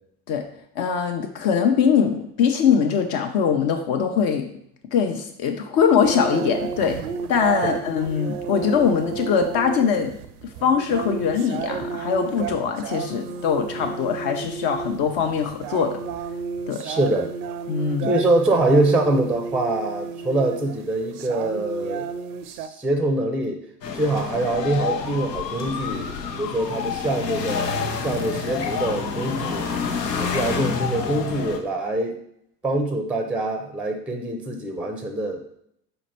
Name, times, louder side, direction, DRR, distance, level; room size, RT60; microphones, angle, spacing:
voice 1, 0.8-4.5 4.9-7.0 7.3-10.2 10.6-16.0 16.7-16.8 17.7-18.1, left 7 dB, 45° left, 4 dB, 0.6 m, -22 dB
sound 1, 6.0-22.7, right 6 dB, 65° right, 0.5 m, -32 dB
voice 2, 16.8-17.3 18.0-22.1 22.5-23.6 23.9-29.7 30.2-32.2 32.6-35.6, right 2 dB, 5° right, 5 dB, 0.5 m, -24 dB
sound 2, 23.8-31.6, left 5 dB, 85° left, 0.7 m, -28 dB
4.3 x 2.9 x 4.3 m, 0.72 s
figure-of-eight pair, 60°, 48 cm